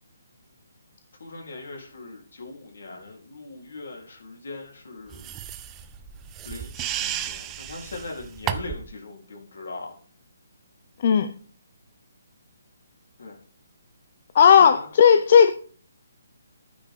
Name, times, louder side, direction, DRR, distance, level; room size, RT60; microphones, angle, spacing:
voice 1, 1.2-5.2 6.4-10.0 13.2-13.4 14.6-15.2, left 3 dB, 75° left, 0 dB, 3.9 m, -40 dB
sound 1, 5.1-8.9, right 11 dB, 20° right, 0.6 m, -33 dB
voice 2, 11.0-11.3 14.3-15.5, left 7 dB, 45° left, 9 dB, 0.7 m, -15 dB
10.5 x 9.6 x 3.8 m, 0.42 s
hypercardioid pair, 155°, 0 cm